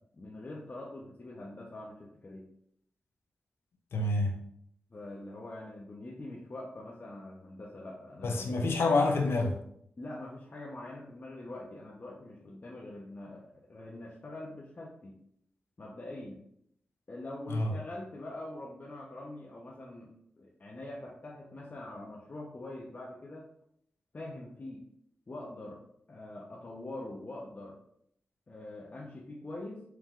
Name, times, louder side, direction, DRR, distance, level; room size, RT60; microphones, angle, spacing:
voice 1, 0.1-2.4 4.9-8.7 10.0-15.2 15.8-16.4 17.1-23.4 24.1-24.9 25.3-25.8 26.1-27.8 28.5-29.8, left 1 dB, 45° left, -4 dB, 0.8 m, -44 dB
voice 2, 3.9-4.4 8.2-9.6 17.5-17.7, left 2 dB, 75° left, 3 dB, 0.6 m, -27 dB
4.6 x 3.4 x 2.4 m, 0.71 s
cardioid pair, 45°, 4 cm